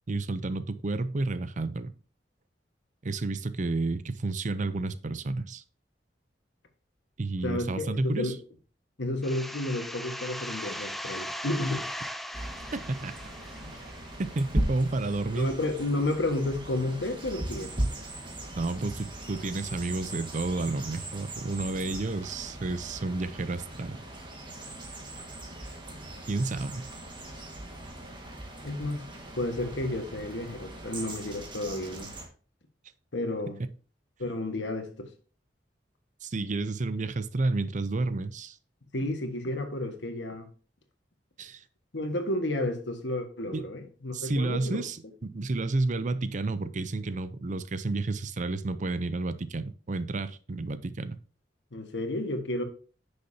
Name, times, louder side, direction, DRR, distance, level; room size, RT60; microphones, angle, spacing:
voice 1, 0.1-1.9 3.0-5.6 7.2-8.3 12.7-13.1 14.2-15.5 18.6-24.0 26.3-26.9 36.2-38.6 41.4-41.6 43.5-43.7 44.1-51.2, right 2 dB, 45° right, 0.6 m, -31 dB
voice 2, 7.4-8.4 9.0-11.9 15.4-17.7 28.6-29.1 29.3-32.1 33.1-33.6 34.2-35.1 38.9-40.5 41.9-44.8 51.7-52.6, left 1 dB, 85° left, 1.5 m, -31 dB
sound 1, 9.2-14.7, equal, ahead, 0.5 m, -39 dB
sound 2, 12.3-32.3, right 1 dB, 30° right, 1.6 m, -38 dB
9.8 x 6.6 x 2.8 m
head